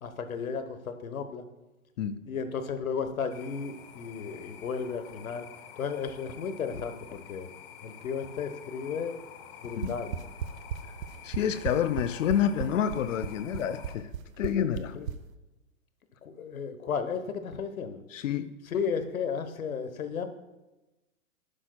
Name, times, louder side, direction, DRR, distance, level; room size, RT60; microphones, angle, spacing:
voice 1, 0.0-1.4 2.2-5.4 5.8-7.5 7.8-9.2 9.6-10.2 14.9-15.1 16.2-18.0 18.6-20.3, left 6 dB, 85° left, 1.2 m, -34 dB
sound 1, 3.3-14.0, left 9 dB, 40° left, 0.9 m, -49 dB
sound 2, 9.6-15.2, right 9 dB, 75° right, 0.8 m, -34 dB
voice 2, 11.2-14.1 14.4-15.0 18.1-18.5, left 9 dB, 65° left, 0.6 m, -28 dB
11.5 x 9.9 x 2.3 m
hypercardioid pair, 130°, 41 cm